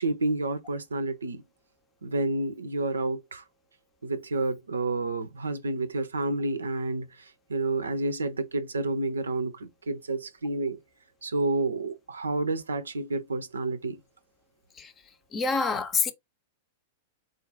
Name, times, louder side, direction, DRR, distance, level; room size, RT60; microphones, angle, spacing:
voice 1, 0.0-1.4 2.0-3.4 4.0-10.8 11.2-14.0, right 2 dB, 75° right, 0.5 m, -30 dB
voice 2, 15.3-16.1, left 4 dB, 20° left, 0.7 m, -26 dB
4.0 x 2.5 x 3.8 m
figure-of-eight pair, 95°, 0 cm